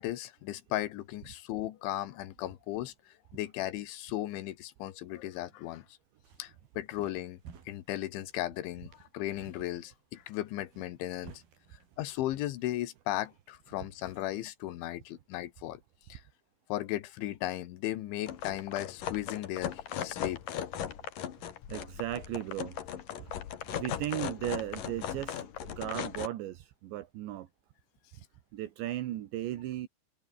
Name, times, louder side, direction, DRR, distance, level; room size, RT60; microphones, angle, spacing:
voice 1, 0.0-5.9 6.4-7.4 7.7-11.4 12.0-15.8 16.1-16.2 16.7-20.4, left 14 dB, 85° left, 3.8 m, -36 dB
sound 1, 6.0-14.5, right 7 dB, 55° right, 5.1 m, -57 dB
sound 2, 18.3-26.3, left 10 dB, 55° left, 3.2 m, -38 dB
voice 2, 21.7-22.8 23.2-23.3 23.7-27.5 28.5-29.9, right 13 dB, 75° right, 3.7 m, -36 dB
omnidirectional pair, 5.3 m